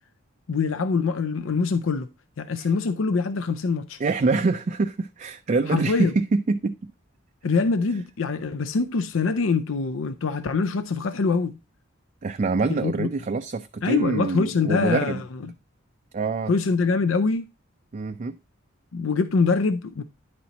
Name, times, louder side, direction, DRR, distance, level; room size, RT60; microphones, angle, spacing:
voice 1, 0.5-2.1 2.4-4.0 5.7-6.1 7.4-11.6 12.7-13.1 13.8-15.2 16.5-17.5 18.9-20.0, left 4 dB, 75° left, 0.5 m, -24 dB
voice 2, 4.0-6.8 12.2-15.2 16.1-16.5 17.9-18.4, right 3 dB, 40° right, 0.4 m, -25 dB
10.5 x 4.3 x 4.0 m
head